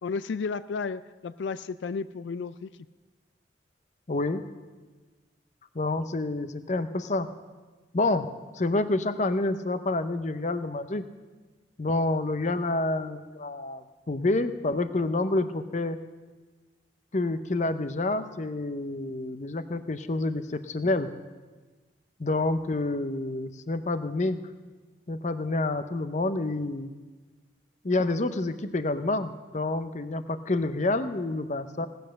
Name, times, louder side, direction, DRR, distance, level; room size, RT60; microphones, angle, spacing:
voice 1, 0.0-2.7, left 5 dB, 90° left, 14 dB, 0.4 m, -33 dB
voice 2, 4.1-4.4 5.7-7.3 7.9-8.3 8.5-11.0 11.8-16.0 17.1-21.1 22.2-24.4 25.1-26.9 27.8-31.9, left 2 dB, 40° left, 11 dB, 0.7 m, -28 dB
17.5 x 7.9 x 6.5 m, 1.3 s
head